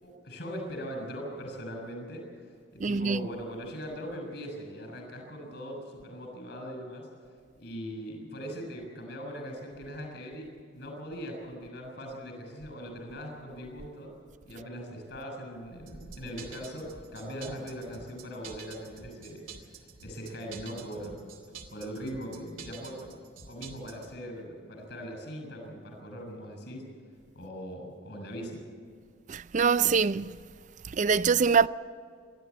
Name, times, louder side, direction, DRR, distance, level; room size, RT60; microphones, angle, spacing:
voice 1, 0.0-7.1 7.5-14.1 14.4-21.2 21.7-23.1 23.5-26.9 27.3-28.6, equal, 60° left, 6.7 m, -40 dB
voice 2, 2.8-3.3 29.3-30.3 30.9-31.7, right 6 dB, 40° right, 0.4 m, -24 dB
sound 1, 15.9-24.1, right 6 dB, 85° right, 2.7 m, -48 dB
26.5 x 12.0 x 8.4 m
head